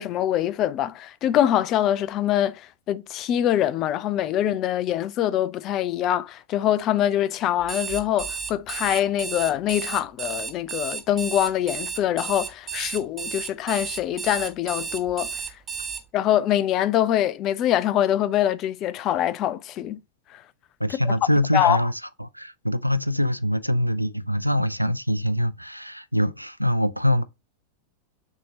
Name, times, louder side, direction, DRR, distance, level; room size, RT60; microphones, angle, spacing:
voice 1, 0.0-15.4 16.1-20.0 20.3-20.4 21.1-21.2 21.5-21.8, left 11 dB, 35° left, 0.4 m, -24 dB
Alarm, 7.6-16.0, right 6 dB, 20° right, 1.0 m, -32 dB
voice 2, 20.8-27.2, left 1 dB, 90° right, 0.3 m, -24 dB
6.1 x 2.8 x 2.6 m
figure-of-eight pair, 90°, 0 cm